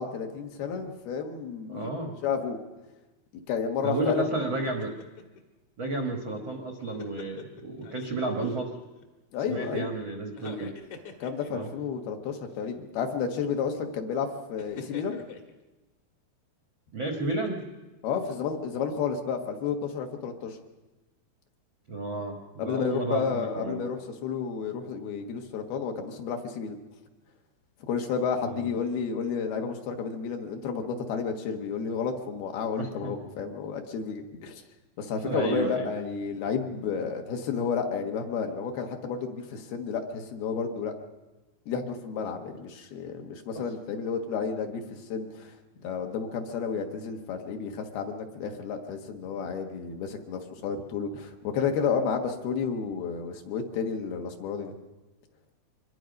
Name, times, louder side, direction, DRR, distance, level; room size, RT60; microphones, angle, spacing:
voice 1, 0.0-1.9 2.2-2.6 3.5-4.2 9.3-9.9 11.2-15.2 18.0-20.6 22.6-26.8 27.9-34.6 35.0-40.9 41.7-44.8 45.1-45.5 45.8-54.8, left 6 dB, 70° left, 4 dB, 3.2 m, -31 dB
voice 2, 1.7-2.1 3.8-4.9 5.8-8.7 9.5-10.7 11.5-11.7 16.9-17.6 21.9-23.9 28.4-28.7 32.8-33.1 35.2-35.9 43.5-43.6, right 2 dB, 65° right, 3 dB, 1.1 m, -31 dB
sound 1, 4.6-5.4 6.6-8.1 8.4-9.1 10.3-11.8 12.5-12.7 14.6-15.5 17.1-17.8 18.2-18.3, left 5 dB, 55° left, 2.6 m, -46 dB
25.0 x 21.0 x 5.3 m, 1.1 s
omnidirectional pair, 4.8 m